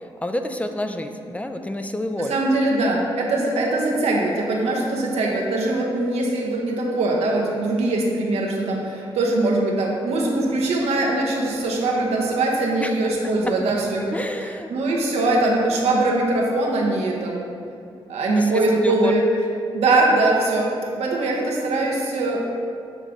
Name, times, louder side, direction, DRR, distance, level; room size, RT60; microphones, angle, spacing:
voice 1, 0.2-2.4 12.8-12.9 14.1-14.7 18.3-19.1, left 1 dB, 15° left, 6 dB, 0.4 m, -28 dB
voice 2, 2.2-17.5 18.1-19.3 19.7-20.7 21.0-22.5, right 2 dB, 85° right, -1 dB, 0.9 m, -22 dB
7.4 x 3.4 x 3.7 m, 2.4 s
cardioid pair, 65°, 10 cm